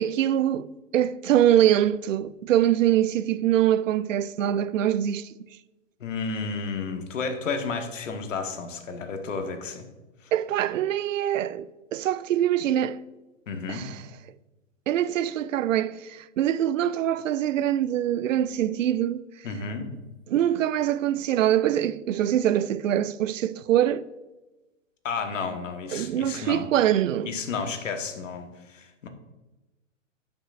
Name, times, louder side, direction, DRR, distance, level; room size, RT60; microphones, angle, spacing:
voice 1, 0.0-5.3 10.3-13.0 13.7-14.0 14.9-19.3 20.3-24.0 25.9-27.3, right 11 dB, 80° right, 0.5 m, -24 dB
voice 2, 6.0-9.9 10.2-10.3 13.5-13.8 19.4-19.9 25.0-26.7 27.2-29.1, left 4 dB, 75° left, 1.3 m, -32 dB
11.0 x 6.0 x 2.5 m
hypercardioid pair, 135°, 38 cm